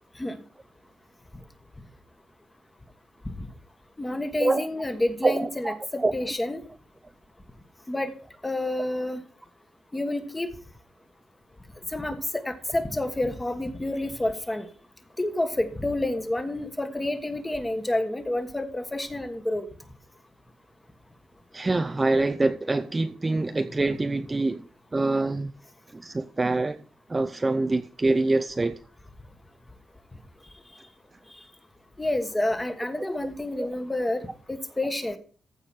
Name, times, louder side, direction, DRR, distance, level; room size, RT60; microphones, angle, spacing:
voice 1, 4.0-6.6 7.9-8.1 8.4-9.2 9.9-10.5 11.9-14.7 15.2-19.7 31.3-31.4 32.0-35.2, left 1 dB, 10° left, 8 dB, 1.3 m, -29 dB
voice 2, 5.2-6.1 21.5-24.7 24.9-25.5 25.9-26.8 27.1-28.8 33.6-33.7, right 2 dB, 15° right, 9 dB, 0.5 m, -25 dB
15.0 x 5.0 x 5.6 m, 0.41 s
wide cardioid pair, 160°, 0 cm